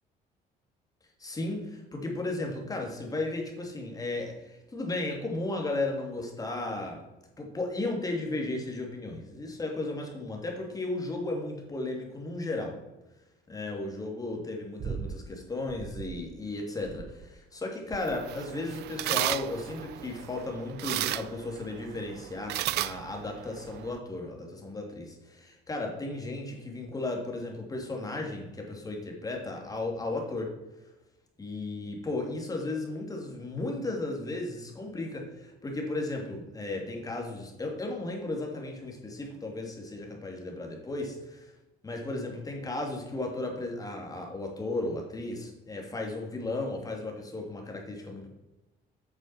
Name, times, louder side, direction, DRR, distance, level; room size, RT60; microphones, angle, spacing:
voice 1, 1.2-7.0 7.4-12.8 13.5-30.5 31.4-41.5 41.8-48.3, left 2 dB, 20° left, 1 dB, 2.8 m, -35 dB
sound 1, 14.8-15.2 15.7-16.3 16.8-17.4 17.9-18.4 19.0-19.4 20.1-20.4 21.4-21.5, right 6 dB, 40° right, 0.8 m, -40 dB
sound 2, 17.9-24.0, right 16 dB, 75° right, 0.4 m, -35 dB
9.0 x 6.3 x 5.8 m, 1.0 s
cardioid pair, 110°, 17 cm